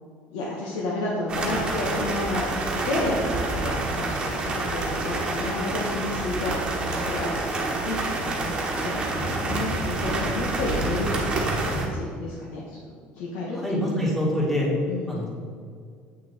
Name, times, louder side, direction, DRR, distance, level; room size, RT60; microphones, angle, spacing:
voice 1, 0.3-2.4 2.7-12.8 13.1-13.6 14.9-15.2, left 2 dB, 85° left, -4 dB, 1.4 m, -31 dB
sound 1, 1.3-11.9, right 2 dB, 20° right, 1.3 m, -28 dB
voice 2, 13.5-14.7 15.1-15.3, equal, 5° left, -5 dB, 2.1 m, -25 dB
8.4 x 6.1 x 4.4 m, 2.2 s
cardioid pair, 160°, 4 cm